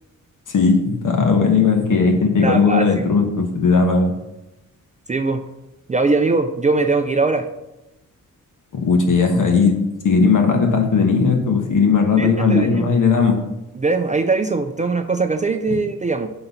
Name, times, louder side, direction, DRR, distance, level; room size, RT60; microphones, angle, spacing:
voice 1, 0.5-4.1 8.8-13.4, left 4 dB, 65° left, 3 dB, 1.3 m, -17 dB
voice 2, 2.4-3.0 5.1-5.4 5.9-7.5 12.2-12.9 13.7-16.3, right 3 dB, 25° right, 7 dB, 0.3 m, -21 dB
5.9 x 3.9 x 5.7 m, 0.96 s
wide cardioid pair, 105°, 34 cm